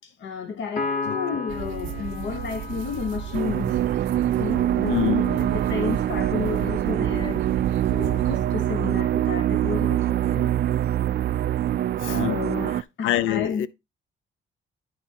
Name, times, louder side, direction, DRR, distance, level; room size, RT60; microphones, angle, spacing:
voice 1, 0.0-3.8 4.4-7.4 7.9-10.5 12.0-13.7, left 6 dB, 70° left, 1.1 m, -32 dB
Piano, 0.8-4.4, left 4 dB, 40° left, 1.9 m, -33 dB
voice 2, 1.1-1.5 4.8-5.4 12.0-13.7, left 12 dB, 85° left, 0.5 m, -27 dB
sound 1, 1.5-8.4, right 12 dB, 90° right, 0.8 m, -33 dB
sound 2, 3.3-12.8, right 12 dB, 55° right, 0.4 m, -24 dB
10.5 x 3.7 x 4.5 m
cardioid pair, 90°, 20 cm